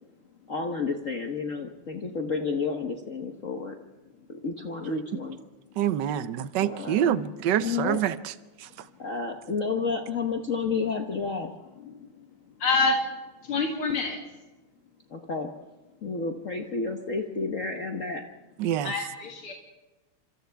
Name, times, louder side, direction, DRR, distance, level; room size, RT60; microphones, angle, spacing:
voice 1, 0.5-3.8 4.3-5.4 6.6-7.3 7.6-8.0 9.0-11.5 15.1-15.5 16.0-18.2, left 4 dB, 45° left, 3 dB, 1.2 m, -31 dB
voice 2, 5.8-8.9 18.6-18.9, right 11 dB, 65° right, 13 dB, 1.3 m, -27 dB
voice 3, 11.8-12.3 12.6-13.0 13.4-14.2 18.8-19.5, left 3 dB, 75° left, -1 dB, 2.9 m, -27 dB
29.5 x 26.5 x 3.5 m, 1.1 s
omnidirectional pair, 2.4 m